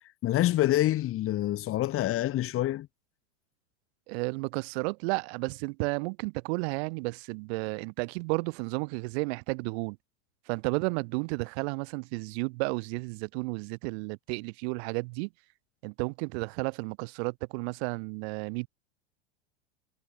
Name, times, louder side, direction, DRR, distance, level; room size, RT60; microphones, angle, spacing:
voice 1, 0.2-2.9, left 14 dB, 35° left, 2.7 m, -26 dB
voice 2, 4.1-10.0 10.5-15.3 15.8-18.7, right 30 dB, 55° right, 7.0 m, -32 dB
hypercardioid pair, 110°, 37 cm